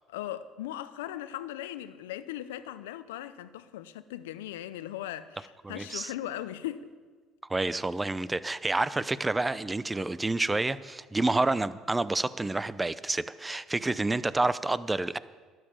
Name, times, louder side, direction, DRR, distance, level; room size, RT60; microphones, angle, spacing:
voice 1, 0.1-6.9, left 12 dB, 85° left, 0.6 m, -38 dB
voice 2, 5.6-6.1 7.5-15.2, right 2 dB, 15° right, 0.6 m, -29 dB
12.0 x 10.5 x 7.3 m
hypercardioid pair, 65°, 0 cm